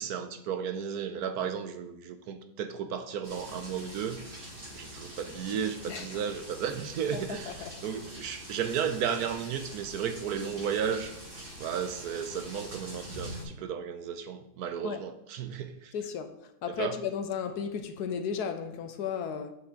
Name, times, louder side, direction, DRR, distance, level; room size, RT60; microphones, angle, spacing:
voice 1, 0.0-4.4 4.7-11.2 11.6-15.9 16.7-17.0, right 8 dB, 75° right, 1.1 m, -34 dB
sound 1, 3.2-13.4, equal, 30° right, 2.2 m, -44 dB
voice 2, 5.9-6.2 7.1-7.7 14.8-15.0 15.9-16.3 16.6-19.5, left 6 dB, 75° left, 1.2 m, -34 dB
7.7 x 5.9 x 3.7 m
omnidirectional pair, 1.8 m